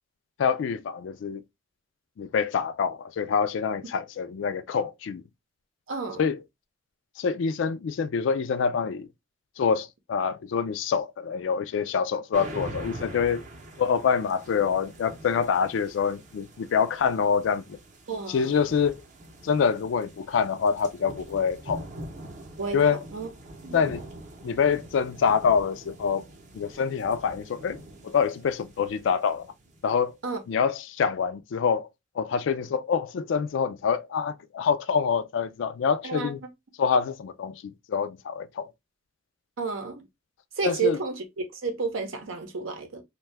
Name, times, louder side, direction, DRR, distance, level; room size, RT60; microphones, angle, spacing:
voice 1, 0.4-1.4 2.2-5.2 6.2-6.4 7.2-9.1 9.6-13.4 13.8-17.8 18.3-19.0 19.4-21.9 22.7-23.0 23.7-24.1 24.4-26.2 26.5-29.5 29.8-30.2 30.5-31.9 32.2-36.4 36.8-38.7 40.6-41.0, left 6 dB, 65° left, 0.3 m, -26 dB
voice 2, 5.9-6.2 18.1-18.5 22.6-22.8 23.1-23.3 23.6-23.8 30.2-30.4 36.0-36.3 39.6-40.0 40.6-41.2 41.5-43.0, right 5 dB, 80° right, 0.7 m, -30 dB
sound 1, 12.3-30.1, right 1 dB, 40° right, 0.6 m, -44 dB
2.6 x 2.2 x 3.1 m
head